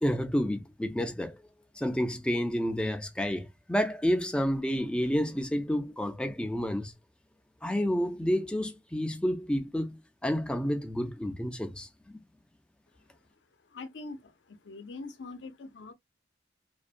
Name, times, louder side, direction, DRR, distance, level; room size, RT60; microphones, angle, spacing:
voice 1, 0.0-1.4 1.7-6.9 7.6-12.2, equal, 5° left, 0.3 m, -30 dB
voice 2, 13.7-15.9, left 3 dB, 85° left, 0.6 m, -43 dB
2.5 x 2.1 x 2.4 m
head